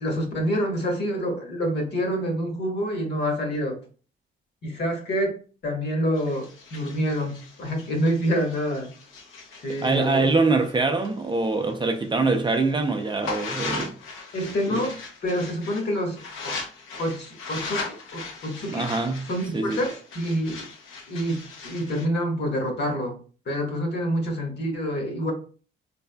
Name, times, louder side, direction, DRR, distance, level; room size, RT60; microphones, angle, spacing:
voice 1, 0.0-3.8 4.6-5.4 5.6-8.9 9.5-10.3 14.3-16.6 17.0-18.9 19.3-20.7 21.1-23.1 23.5-25.3, equal, 60° left, 1.3 m, -27 dB
sound 1, 6.1-11.8 12.2-22.1, left 4 dB, 85° left, 0.8 m, -38 dB
voice 2, 9.8-13.9 14.7-14.8 18.7-19.8, right 3 dB, 25° right, 0.4 m, -24 dB
3.5 x 3.3 x 2.2 m
cardioid pair, 90°, 20 cm